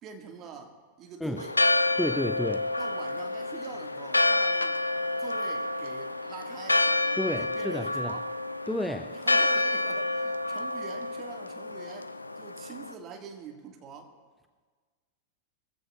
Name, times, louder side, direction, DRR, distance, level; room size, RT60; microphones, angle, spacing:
voice 1, 0.0-1.6 2.8-4.8 5.2-6.8 7.4-8.3 9.1-14.1, right 5 dB, 35° right, 3 dB, 1.8 m, -45 dB
Church bell, 1.4-12.9, left 2 dB, 80° left, 0.4 m, -28 dB
voice 2, 2.0-2.8 7.2-8.2 8.7-9.2, left 1 dB, 5° left, 8 dB, 0.5 m, -31 dB
22.0 x 15.0 x 2.4 m, 1.5 s
figure-of-eight pair, 90°, 0 cm